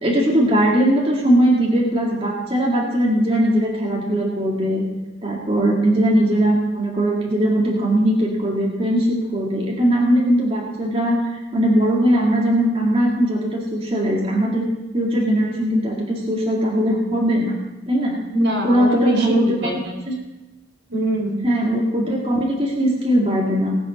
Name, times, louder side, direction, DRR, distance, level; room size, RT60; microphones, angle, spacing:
voice 1, 0.0-4.8 5.2-14.6 14.9-17.6 17.9-18.2 18.6-19.6 20.1-20.2 21.4-23.8, right 1 dB, 30° right, -4 dB, 2.0 m, -19 dB
voice 2, 18.3-19.9 20.9-21.4, equal, 75° right, -1 dB, 3.8 m, -22 dB
19.0 x 7.7 x 5.2 m, 1.1 s
head